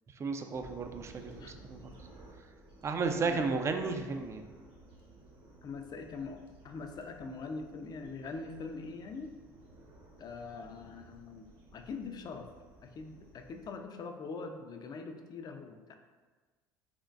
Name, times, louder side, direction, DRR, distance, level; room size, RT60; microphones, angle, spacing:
voice 1, 0.2-1.9 2.8-4.5, right 4 dB, 25° right, 6 dB, 0.4 m, -33 dB
sound 1, 0.5-13.7, right 1 dB, 50° right, 0.9 m, -56 dB
voice 2, 5.6-9.3 10.2-12.5 12.8-15.9, left 4 dB, 40° left, 6 dB, 0.5 m, -43 dB
3.7 x 3.5 x 2.4 m, 1.4 s
hypercardioid pair, 70°, 11 cm